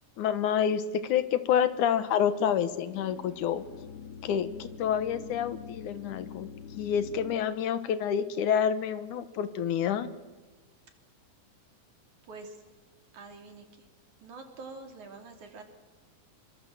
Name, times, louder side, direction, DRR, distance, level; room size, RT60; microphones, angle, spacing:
voice 1, 0.2-3.6 4.2-6.5 6.8-10.1, left 8 dB, 80° left, 12 dB, 2.7 m, -28 dB
sound 1, 2.6-7.4, left 8 dB, 60° left, 2.2 m, -45 dB
voice 2, 12.2-12.6 13.1-13.9 14.2-15.6, right 3 dB, 70° right, 4 dB, 4.4 m, -46 dB
26.5 x 24.0 x 7.8 m, 1.2 s
omnidirectional pair, 3.5 m